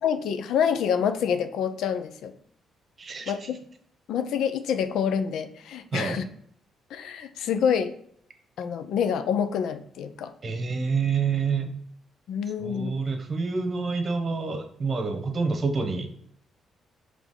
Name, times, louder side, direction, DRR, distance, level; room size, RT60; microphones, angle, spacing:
voice 1, 0.0-2.3 3.3-3.6 4.1-6.2 6.9-7.9 8.6-10.3 12.3-12.9, left 7 dB, 80° left, 10 dB, 0.6 m, -27 dB
voice 2, 3.0-3.5 5.9-6.2 10.4-11.7 12.6-16.1, right 4 dB, 40° right, 6 dB, 1.2 m, -28 dB
5.1 x 3.5 x 5.5 m, 0.66 s
cardioid pair, 90°, 0 cm